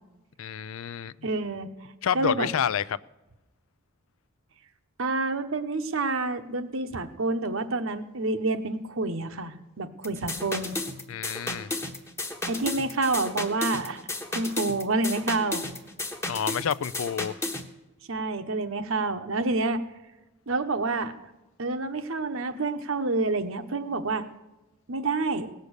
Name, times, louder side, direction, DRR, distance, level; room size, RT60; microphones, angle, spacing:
voice 1, 0.4-1.3 2.0-3.0 11.1-11.7 16.2-17.4, left 8 dB, 80° left, 0.4 m, -29 dB
voice 2, 1.2-1.7 2.1-2.5 5.0-10.8 12.5-14.0 14.3-15.7 18.1-19.8 20.5-21.3 21.6-24.3 24.9-25.5, right 3 dB, 75° right, 1.0 m, -28 dB
sound 1, 10.0-17.7, left 2 dB, 15° left, 1.0 m, -33 dB
18.0 x 6.7 x 8.1 m
head